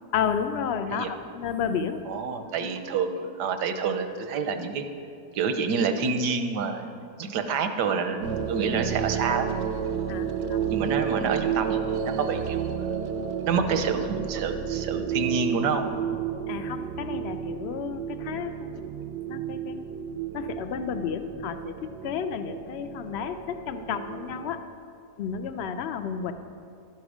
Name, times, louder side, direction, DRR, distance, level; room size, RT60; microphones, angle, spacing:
voice 1, 0.1-2.0 10.1-10.6 16.5-19.9 20.3-24.6 25.2-26.3, left 7 dB, 80° left, 9 dB, 0.5 m, -32 dB
voice 2, 2.1-4.8 5.3-6.9 7.2-9.5 10.7-12.7 13.5-15.9, right 5 dB, 80° right, 8 dB, 1.4 m, -28 dB
sound 1, 8.2-24.6, right 8 dB, 65° right, 0.7 m, -31 dB
12.0 x 10.5 x 4.9 m, 2.4 s
omnidirectional pair, 1.8 m